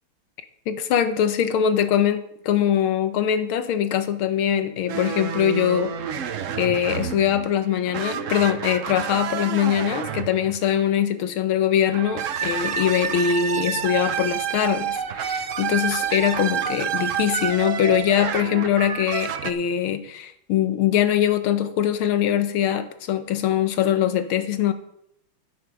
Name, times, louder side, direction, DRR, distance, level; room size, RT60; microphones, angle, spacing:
voice 1, 0.7-5.9 6.6-24.7, left 9 dB, 85° left, 10 dB, 1.8 m, -22 dB
sound 1, 4.9-10.9 11.9-19.5, right 8 dB, 75° right, 0.7 m, -29 dB
sound 2, 12.4-18.0, left 2 dB, 25° left, 4.0 m, -46 dB
10.5 x 9.3 x 5.2 m, 0.75 s
omnidirectional pair, 2.3 m